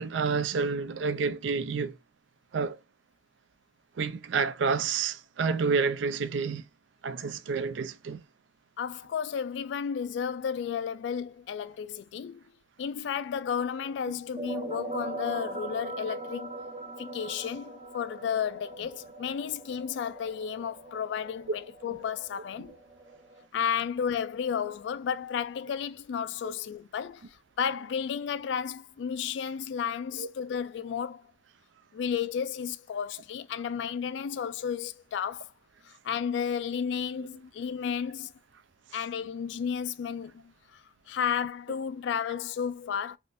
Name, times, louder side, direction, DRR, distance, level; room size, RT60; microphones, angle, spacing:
voice 1, 0.0-2.0 2.5-2.8 4.0-6.6 7.0-8.2 26.4-26.5 30.2-30.3, right 5 dB, 85° right, 0.4 m, -29 dB
voice 2, 8.8-12.4 12.8-16.5 17.0-22.7 23.5-31.2 31.9-35.5 35.9-38.3 38.9-40.8 41.1-43.2, left 7 dB, 75° left, 0.3 m, -33 dB
sound 1, 14.1-23.4, right 2 dB, 30° right, 0.4 m, -41 dB
3.6 x 2.4 x 2.6 m
head